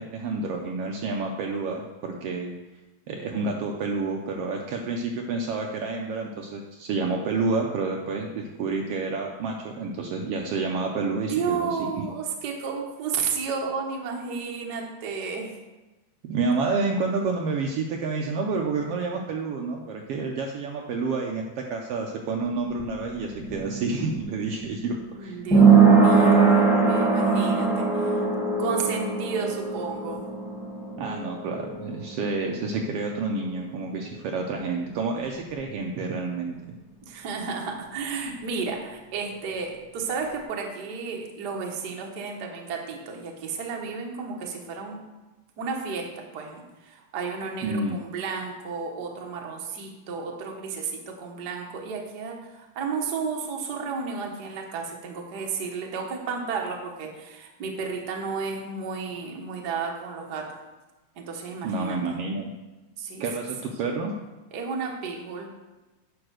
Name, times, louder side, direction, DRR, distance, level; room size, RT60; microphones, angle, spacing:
voice 1, 0.0-2.5 3.1-11.8 16.2-25.4 31.0-36.6 47.6-48.0 61.6-62.5 63.2-64.1, right 3 dB, 90° right, 1 dB, 1.3 m, -29 dB
voice 2, 11.1-15.6 25.1-28.2 28.6-30.2 37.1-45.0 45.6-60.5 61.2-62.0 63.0-63.2 64.5-65.5, right 5 dB, 65° right, 1 dB, 1.0 m, -32 dB
sound 1, 22.5-33.9 34.2-34.3, right 4 dB, ahead, 1.5 m, -22 dB
9.8 x 4.4 x 6.3 m, 1.1 s
omnidirectional pair, 3.6 m